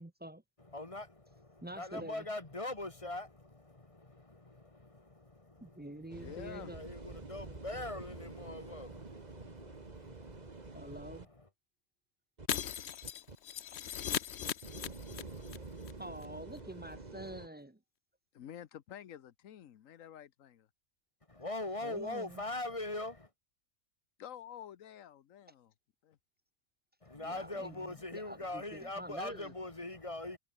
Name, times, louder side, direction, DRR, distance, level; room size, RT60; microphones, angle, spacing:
voice 1, 0.0-0.4 1.6-2.2 5.6-6.8 10.7-11.3 16.0-17.8 21.8-22.4 27.2-29.5, right 1 dB, 15° right, 0.4 m, -47 dB
voice 2, 0.6-11.5 21.3-23.3 27.0-30.4, left 2 dB, 25° left, 1.9 m, -42 dB
sound 1, 6.1-11.3 12.4-12.5 13.0-13.4 14.4-17.5, right 3 dB, 30° right, 2.0 m, -48 dB
voice 3, 6.2-6.7 18.3-20.7 24.2-25.7 26.0-26.2, left 10 dB, 80° left, 1.3 m, -49 dB
Shatter, 12.5-15.6 15.8-15.9 16.2-16.3, left 9 dB, 60° left, 1.0 m, -38 dB
omnidirectional pair, 1.4 m